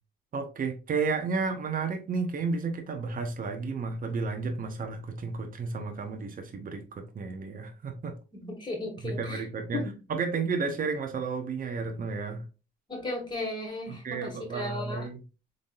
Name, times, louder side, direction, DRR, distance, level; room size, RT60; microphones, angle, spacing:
voice 1, 0.3-8.1 9.0-9.8 10.1-12.4 13.9-15.2, right 4 dB, 45° right, 0.9 m, -32 dB
voice 2, 8.3-9.4 9.7-10.0 12.9-15.1, left 2 dB, 20° left, 2.1 m, -36 dB
3.8 x 3.6 x 2.5 m
cardioid pair, 90°, 20 cm